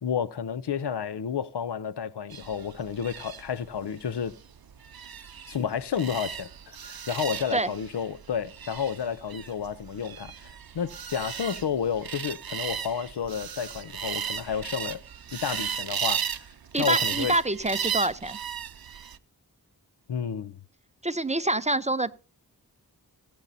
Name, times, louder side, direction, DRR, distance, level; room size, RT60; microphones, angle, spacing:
voice 1, 0.0-4.3 5.5-15.0 15.3-16.3 16.8-17.3 20.1-20.6, left 7 dB, 90° left, 0.6 m, -31 dB
sound 1, 2.3-19.2, right 8 dB, 65° right, 0.6 m, -35 dB
voice 2, 16.7-18.4 21.0-22.1, right 2 dB, 20° right, 0.5 m, -26 dB
18.5 x 8.6 x 2.6 m
wide cardioid pair, 45°, 39 cm